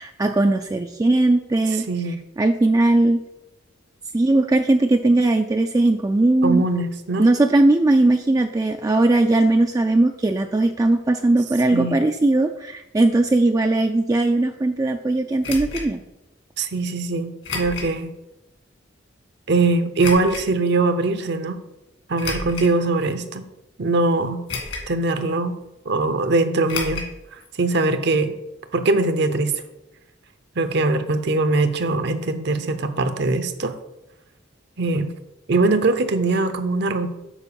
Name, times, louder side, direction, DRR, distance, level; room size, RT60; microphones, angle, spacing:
voice 1, 0.0-1.9 2.4-3.2 4.1-6.7 7.2-16.0, right 2 dB, 20° right, 5 dB, 0.3 m, -19 dB
voice 2, 1.9-2.2 6.4-7.3 11.7-12.0 16.6-18.1 19.5-21.6 22.1-23.5 23.8-24.4 24.9-25.6 25.9-27.0 27.3-28.3 28.7-29.5 30.6-33.7 34.8-35.1 35.5-37.1, right 3 dB, 60° right, 9 dB, 0.7 m, -21 dB
sound 1, 15.4-15.9 17.4-17.9 18.5-18.6 20.0-20.4 22.1-22.7 23.4-23.5 24.5-25.0 25.2-25.3 26.7-27.1 27.4-27.5 27.8-27.9, left 3 dB, 75° left, 2.2 m, -30 dB
7.1 x 4.5 x 6.9 m, 0.94 s
head